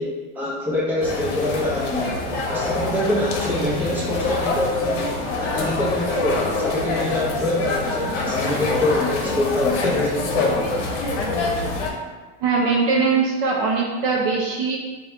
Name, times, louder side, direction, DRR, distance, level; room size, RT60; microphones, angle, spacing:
voice 1, 0.0-2.2 2.5-5.1 5.4-10.6, left 1 dB, 5° right, -7 dB, 0.8 m, -25 dB
walla market croatian MS, 1.0-11.9, left 2 dB, 80° left, 0.9 m, -25 dB
voice 2, 12.4-14.8, right 4 dB, 45° right, -2 dB, 0.6 m, -21 dB
4.2 x 2.4 x 3.5 m, 1.3 s
supercardioid pair, 140°, 36 cm